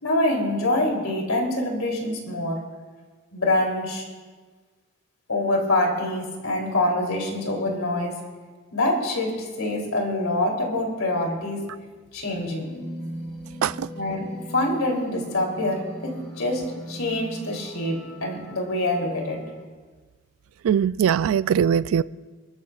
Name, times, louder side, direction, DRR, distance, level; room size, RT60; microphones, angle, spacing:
voice 1, 0.0-2.6 3.3-4.1 5.3-8.1 8.7-11.6 12.1-12.7 14.0-16.6 16.9-19.4, left 1 dB, 85° left, 0 dB, 3.2 m, -25 dB
sound 1, 12.4-19.6, right 1 dB, 5° left, 3.5 m, -40 dB
voice 2, 20.6-22.0, right 8 dB, 80° right, 18 dB, 0.3 m, -21 dB
29.0 x 13.5 x 2.4 m, 1.4 s
head